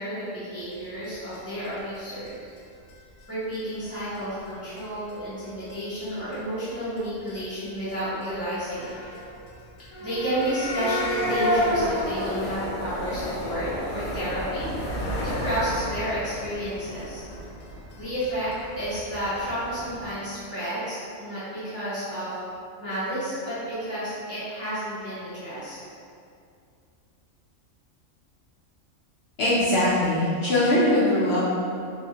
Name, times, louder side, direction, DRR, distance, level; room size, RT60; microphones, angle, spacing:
voice 1, 0.0-2.4 3.3-8.9 10.0-17.2 18.0-18.5 18.8-22.4 22.8-25.8, equal, 15° right, -13 dB, 0.7 m, -31 dB
sound 1, 1.0-1.1 1.3-1.4 1.6-1.7 2.0-2.1 2.3-2.4 2.6-2.7 2.9-3.2 3.5-3.6 3.8-3.9 4.2-4.4 4.8-4.9 5.1-5.7 6.0-6.3 6.6-6.7 7.0-7.1 7.3-7.4 7.6-7.7 7.9-8.0 8.2-20.1, equal, 85° left, 1.0 m, -31 dB
voice 2, 29.4-31.5, left 1 dB, 60° left, -10 dB, 0.8 m, -21 dB
2.9 x 2.0 x 2.8 m, 2.4 s
omnidirectional pair, 1.3 m